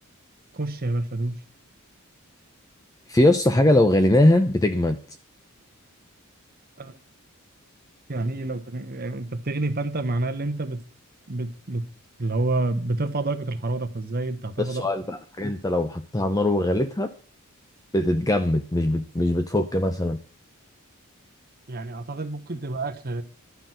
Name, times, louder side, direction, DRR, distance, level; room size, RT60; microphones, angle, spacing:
voice 1, 0.5-1.4 6.8-6.9 8.1-10.8 11.3-11.8 12.2-14.8 21.7-23.2, right 2 dB, 45° right, 1.1 m, -28 dB
voice 2, 3.1-5.0 14.6-17.1 17.9-20.2, left 1 dB, 15° left, 0.6 m, -21 dB
11.5 x 5.9 x 7.8 m
head